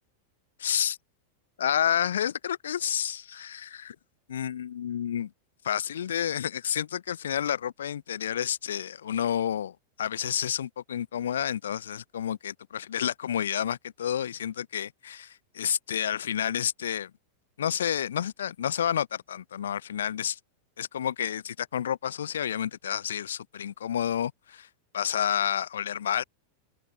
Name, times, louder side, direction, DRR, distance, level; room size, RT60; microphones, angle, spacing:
voice 1, 0.6-1.0 1.6-3.9 4.3-5.3 5.6-17.1 17.6-20.4 20.8-24.7 24.9-26.2, left 9 dB, 65° left, 1.2 m, -30 dB
open air
figure-of-eight pair, 90°, 0 cm